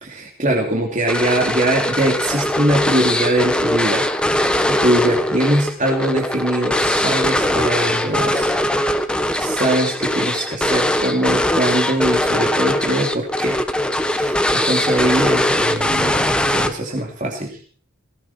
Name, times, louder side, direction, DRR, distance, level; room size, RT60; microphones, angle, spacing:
voice 1, 0.0-8.5 9.4-13.6 14.1-17.6, right 1 dB, 35° right, 0 dB, 2.8 m, -22 dB
sound 1, 1.1-17.0, left 1 dB, 5° left, 1.2 m, -20 dB
18.0 x 17.5 x 4.4 m, 0.43 s
head